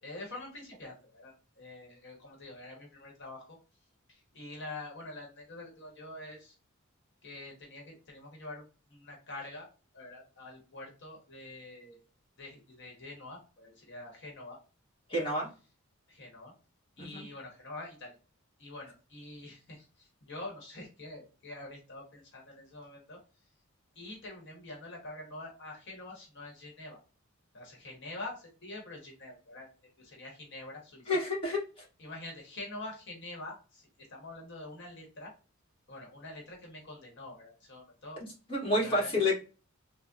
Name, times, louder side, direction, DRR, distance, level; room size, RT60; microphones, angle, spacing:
voice 1, 0.0-3.6 4.1-6.5 7.2-9.7 9.9-12.0 12.4-14.6 16.1-16.5 17.0-18.1 18.6-23.2 23.9-27.0 27.5-29.7 30.0-31.1 32.0-35.3 35.9-38.2 38.7-39.3, left 2 dB, 60° left, 0 dB, 1.0 m, -46 dB
voice 2, 15.1-15.5 17.0-17.3 31.1-31.8 38.5-39.3, left 2 dB, 25° left, -4 dB, 1.0 m, -29 dB
3.4 x 2.0 x 2.5 m, 0.34 s
head